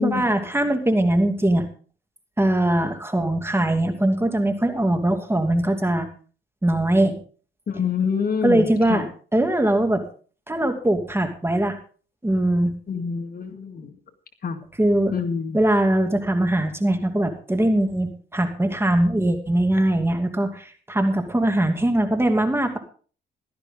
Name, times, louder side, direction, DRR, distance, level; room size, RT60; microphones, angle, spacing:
voice 1, 0.0-1.6 2.4-6.1 6.6-7.2 8.4-10.0 10.5-11.8 12.2-12.7 14.8-15.1 15.5-22.8, right 1 dB, 10° right, 6 dB, 2.6 m, -21 dB
voice 2, 7.7-9.1 12.9-13.9 14.4-14.6 15.1-15.6, left 6 dB, 50° left, 7 dB, 2.1 m, -26 dB
16.0 x 12.5 x 3.8 m, 0.40 s
cardioid pair, 90°, 20 cm